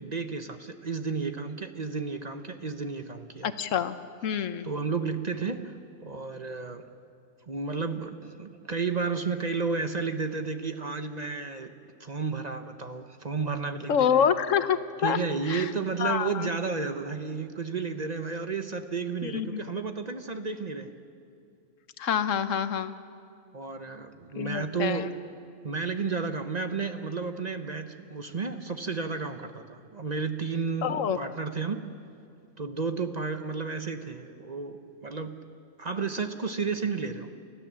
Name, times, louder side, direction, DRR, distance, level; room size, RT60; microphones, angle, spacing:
voice 1, 0.0-3.5 4.6-5.8 6.0-6.8 7.5-11.7 12.0-14.4 15.0-20.9 23.5-25.1 25.6-31.8 32.6-35.4 35.8-37.3, right 4 dB, 35° right, 7 dB, 0.9 m, -32 dB
voice 2, 3.4-4.0 4.2-4.7 13.9-15.2 15.5-15.7 16.0-16.5 19.2-19.6 22.0-23.0 24.4-25.1 30.8-31.2, left 8 dB, 80° left, 11 dB, 1.2 m, -27 dB
30.0 x 13.5 x 7.4 m, 2.4 s
omnidirectional pair, 1.3 m